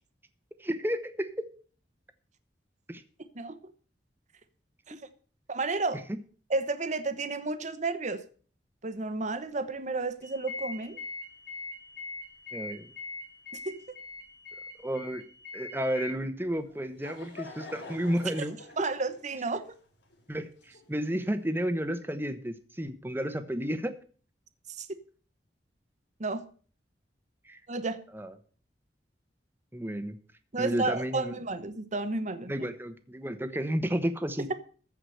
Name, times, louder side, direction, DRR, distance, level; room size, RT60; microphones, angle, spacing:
voice 1, 0.6-1.3 2.9-3.0 12.5-12.9 14.8-15.2 15.5-18.6 20.3-20.5 20.9-23.9 27.5-27.6 28.1-28.3 29.7-30.2 30.6-31.4 32.5-34.5, equal, 10° right, 1.0 m, -32 dB
voice 2, 5.5-6.0 6.5-8.2 8.8-11.0 13.6-14.0 18.8-19.6 24.7-24.9 26.2-26.4 27.7-28.0 30.5-32.7, right 3 dB, 45° right, 1.0 m, -32 dB
sound 1, 10.2-16.1, left 3 dB, 60° left, 6.6 m, -42 dB
Laughter / Crowd, 16.6-21.3, left 3 dB, 90° left, 3.0 m, -47 dB
14.5 x 5.0 x 7.8 m
head